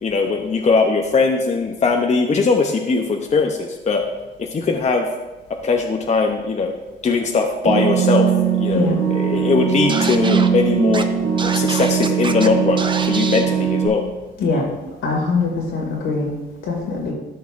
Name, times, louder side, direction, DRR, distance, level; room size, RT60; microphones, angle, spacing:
voice 1, 0.0-4.0 4.4-5.1 5.5-6.7 7.0-8.3 8.6-11.1 11.4-14.0, left 4 dB, 35° left, 3 dB, 0.8 m, -20 dB
sound 1, 7.6-13.9, right 8 dB, 85° right, 1.9 m, -20 dB
Scratching (performance technique), 9.9-10.5 10.9-11.0 11.4-12.5 12.8-13.5, right 4 dB, 25° right, 0.6 m, -27 dB
voice 2, 15.0-16.3 16.7-17.1, left 4 dB, 80° left, -1 dB, 2.3 m, -22 dB
13.5 x 5.5 x 2.6 m, 1.1 s
cardioid pair, 90°, 20 cm